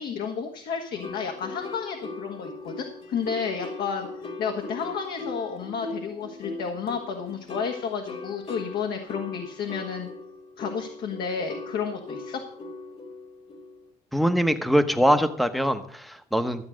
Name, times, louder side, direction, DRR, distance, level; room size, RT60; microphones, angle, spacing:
voice 1, 0.0-10.1 10.6-12.4, left 6 dB, 70° left, 2 dB, 1.6 m, -32 dB
sound 1, 0.9-13.9, left 3 dB, 35° left, 1.6 m, -39 dB
voice 2, 14.1-16.7, equal, ahead, 10 dB, 1.0 m, -23 dB
13.0 x 8.0 x 6.3 m, 0.66 s
cardioid pair, 110°, 17 cm